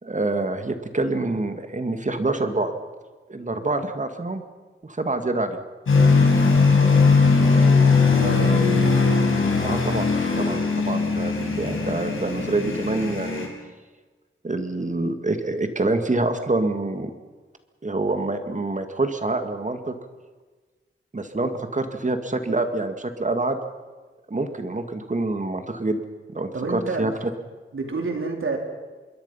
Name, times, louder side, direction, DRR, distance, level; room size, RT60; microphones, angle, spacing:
voice 1, 0.0-2.7 3.3-4.4 4.8-5.6 9.6-13.5 14.4-17.1 17.8-20.0 21.1-23.6 24.3-26.0 26.3-27.3, right 2 dB, 35° right, 7 dB, 2.1 m, -26 dB
sound 1, 5.9-13.5, left 4 dB, 85° left, 5.2 m, -19 dB
voice 2, 7.8-8.9 21.4-21.5 26.5-27.1 27.7-28.6, right 3 dB, 85° right, 3 dB, 3.9 m, -29 dB
26.5 x 22.0 x 5.7 m, 1.3 s
wide cardioid pair, 95°, 20 cm